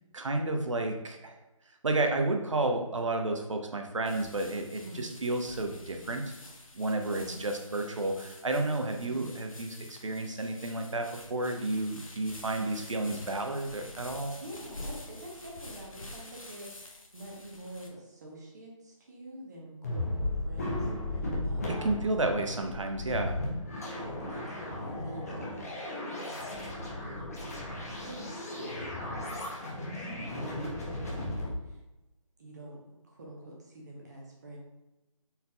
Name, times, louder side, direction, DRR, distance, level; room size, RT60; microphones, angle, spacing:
voice 1, 0.1-1.4 1.8-6.3 6.7-14.3 21.8-23.4, right 2 dB, 65° right, 4 dB, 0.6 m, -31 dB
sound 1, 4.1-17.9, left 2 dB, 75° left, 0.7 m, -48 dB
voice 2, 14.4-21.9 23.8-27.4 28.0-31.8 32.4-34.6, right 1 dB, 30° right, -3 dB, 0.9 m, -47 dB
sound 2, 19.8-31.5, left 1 dB, 30° left, 0.7 m, -35 dB
4.1 x 3.8 x 2.3 m, 1.0 s
figure-of-eight pair, 155°, 18 cm